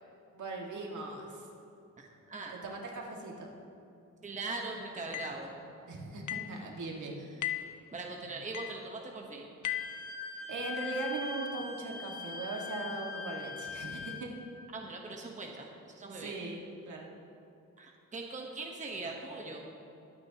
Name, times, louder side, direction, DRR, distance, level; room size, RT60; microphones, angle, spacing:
voice 1, 0.3-1.5 2.5-3.5 5.9-7.2 10.5-14.3 16.1-17.1, right 3 dB, 75° right, -1 dB, 1.8 m, -39 dB
voice 2, 2.0-2.6 4.2-5.5 7.9-9.5 14.7-16.3 17.8-19.6, right 3 dB, 25° right, 0 dB, 1.1 m, -41 dB
sound 1, 5.1-5.4 6.3-6.6 7.4-7.8 8.5-8.8 9.6-10.0, left 12 dB, 75° left, 0.7 m, -36 dB
Wind instrument woodwind instrument, 9.6-14.3, left 5 dB, 30° left, 2.0 m, -41 dB
22.0 x 8.6 x 2.9 m, 2.6 s
wide cardioid pair, 145°, 30 cm